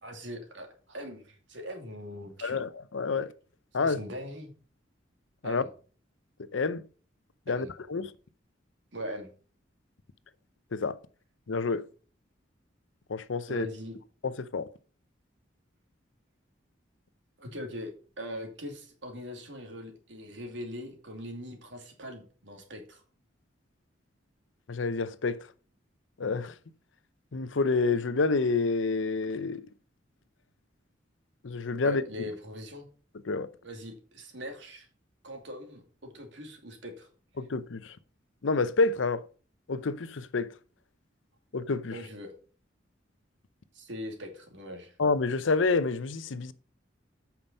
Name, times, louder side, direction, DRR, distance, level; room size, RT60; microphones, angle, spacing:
voice 1, 0.0-2.6 3.8-4.5 5.4-5.7 7.5-7.7 8.9-9.3 13.5-14.0 17.4-23.0 31.8-32.9 33.6-34.9 35.2-37.1 41.9-42.3 43.7-45.0, equal, 70° right, 2.6 m, -41 dB
voice 2, 2.4-3.3 3.7-4.0 5.4-5.6 6.5-6.8 7.5-8.1 10.7-11.0 11.5-11.8 13.1-13.7 14.2-14.7 24.7-25.5 26.2-26.5 27.3-29.7 31.4-32.0 33.3-33.5 37.4-38.0 38.4-39.2 39.7-40.5 41.5-41.9 45.0-46.5, left 4 dB, 90° left, 0.7 m, -28 dB
8.8 x 5.9 x 5.3 m
head